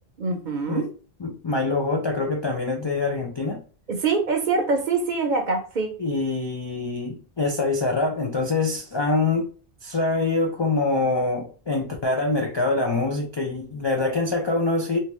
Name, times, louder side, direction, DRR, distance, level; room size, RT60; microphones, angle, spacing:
voice 1, 0.2-0.9 3.9-5.9, right 4 dB, 50° right, 0.7 m, -24 dB
voice 2, 1.2-3.6 6.0-9.5 9.8-15.0, left 3 dB, 45° left, 0.3 m, -25 dB
2.8 x 2.2 x 3.0 m
omnidirectional pair, 1.1 m